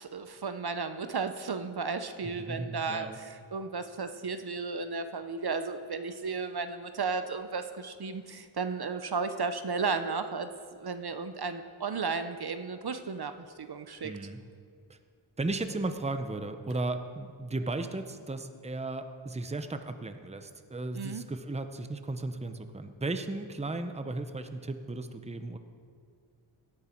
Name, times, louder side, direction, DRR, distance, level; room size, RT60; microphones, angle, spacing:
voice 1, 0.0-10.5 10.8-13.3 13.6-14.1 20.9-21.2, right 4 dB, 55° right, 9 dB, 0.7 m, -34 dB
voice 2, 2.2-3.2 14.0-14.4 14.9-15.0 15.4-25.6, right 2 dB, 15° right, 8 dB, 0.7 m, -35 dB
17.5 x 11.0 x 4.5 m, 2.3 s
wide cardioid pair, 90°, 47 cm